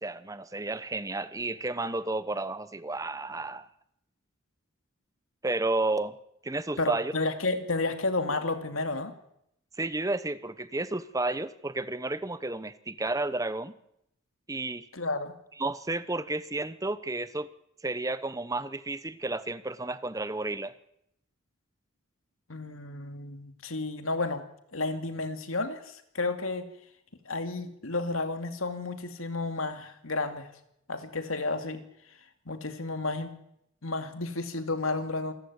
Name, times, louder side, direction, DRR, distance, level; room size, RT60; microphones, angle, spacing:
voice 1, 0.0-3.7 5.4-6.2 6.4-7.1 9.8-13.7 14.5-14.9 15.6-17.5 17.8-20.7, right 2 dB, 15° right, 14 dB, 0.9 m, -32 dB
voice 2, 6.8-9.1 14.9-15.3 22.5-24.4 24.7-26.6 27.3-30.5 30.9-31.8 32.5-33.4 33.8-35.3, left 3 dB, 80° left, 8 dB, 2.5 m, -31 dB
27.5 x 13.5 x 9.6 m, 0.78 s
head